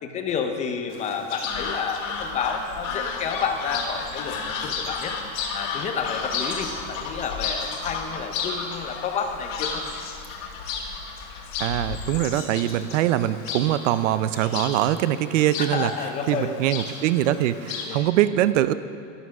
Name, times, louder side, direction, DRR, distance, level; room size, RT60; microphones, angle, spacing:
voice 1, 0.0-5.1 5.5-9.8 15.6-16.6 17.8-18.1, left 6 dB, 20° left, 5 dB, 0.5 m, -30 dB
Chirp tweet, 0.9-18.0, left 5 dB, 45° left, 1.8 m, -36 dB
sound 1, 1.5-12.2, left 5 dB, 70° left, 2.3 m, -34 dB
voice 2, 11.6-15.9 16.3-18.7, right 12 dB, 70° right, 14 dB, 0.6 m, -23 dB
12.0 x 11.0 x 5.9 m, 2.7 s
supercardioid pair, 160°, 39 cm